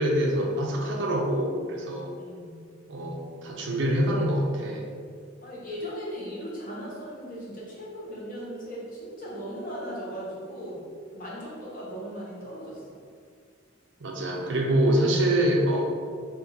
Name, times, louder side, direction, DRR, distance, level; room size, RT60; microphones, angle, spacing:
voice 1, 0.0-2.1 2.9-4.8 14.0-15.8, right 1 dB, 70° right, 0 dB, 0.5 m, -25 dB
voice 2, 2.1-2.8 5.4-10.8 11.1-13.0, equal, 45° left, -6 dB, 1.0 m, -38 dB
2.5 x 2.5 x 3.9 m, 2.1 s
head